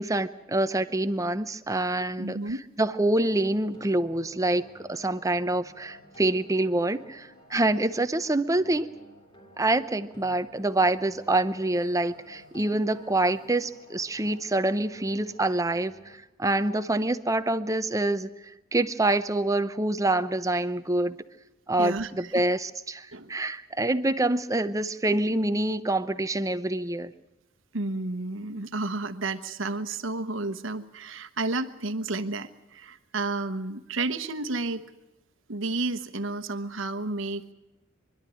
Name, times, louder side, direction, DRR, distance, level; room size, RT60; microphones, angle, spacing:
voice 1, 0.0-2.4 2.8-8.9 9.6-18.3 18.7-21.2 21.7-27.1, right 2 dB, 15° right, 12 dB, 0.7 m, -26 dB
voice 2, 1.9-2.6 21.8-22.4 23.1-23.4 27.7-34.8 35.5-37.5, right 3 dB, 65° right, 10 dB, 1.2 m, -31 dB
sound 1, 3.3-16.1, equal, 25° left, 3.5 m, -52 dB
25.0 x 12.0 x 10.0 m, 1.0 s
head